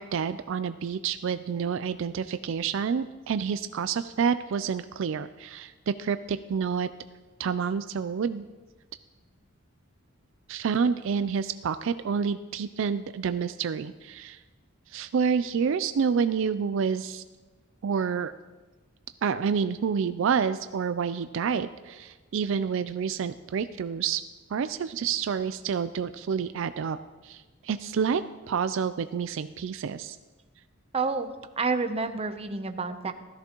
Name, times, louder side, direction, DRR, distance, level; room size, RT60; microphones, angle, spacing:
voice 1, 0.0-6.9 7.4-8.4 10.5-14.4 14.9-17.2 17.8-18.3 19.2-24.2 24.5-27.0 27.2-28.2 28.5-30.2, right 6 dB, 65° right, 12 dB, 0.4 m, -28 dB
voice 2, 30.9-33.1, right 4 dB, 30° right, 8 dB, 0.7 m, -29 dB
16.0 x 13.5 x 3.0 m, 1.2 s
head